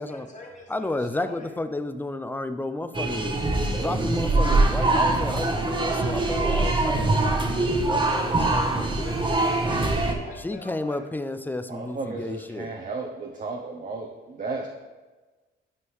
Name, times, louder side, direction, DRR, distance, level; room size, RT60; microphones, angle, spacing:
voice 1, 0.0-1.5 8.9-11.0, left 2 dB, 35° left, -1 dB, 1.9 m, -42 dB
voice 2, 0.7-7.3 7.6-9.0 10.4-12.7, left 2 dB, 10° left, 10 dB, 0.4 m, -32 dB
sound 1, 2.9-10.1, right 2 dB, 25° right, 1.0 m, -23 dB
voice 3, 11.6-14.7, right 3 dB, 40° right, 0 dB, 0.7 m, -34 dB
9.7 x 5.3 x 3.1 m, 1.3 s
cardioid pair, 90°, 20 cm